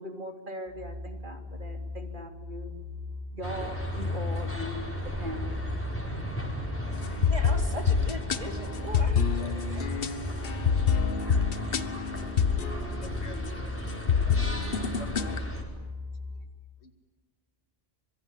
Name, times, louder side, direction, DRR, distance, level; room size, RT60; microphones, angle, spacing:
voice 1, 0.0-2.7 3.3-5.5, right 1 dB, 50° right, 4 dB, 3.4 m, -40 dB
sound 1, 0.7-16.4, left 2 dB, 70° right, 4.5 m, -40 dB
sound 2, 3.4-15.6, equal, 10° left, 5.1 m, -36 dB
sound 3, 7.0-13.5 13.9-15.4, left 6 dB, 60° left, 1.3 m, -27 dB
voice 2, 7.1-10.3, equal, 30° right, 5 dB, 2.8 m, -40 dB
voice 3, 12.7-13.4 13.8-13.9 14.7-15.4 15.6-15.8 16.8-16.9, left 2 dB, 90° left, 7 dB, 2.7 m, -48 dB
25.5 x 23.0 x 10.0 m, 1.4 s
omnidirectional pair, 1.1 m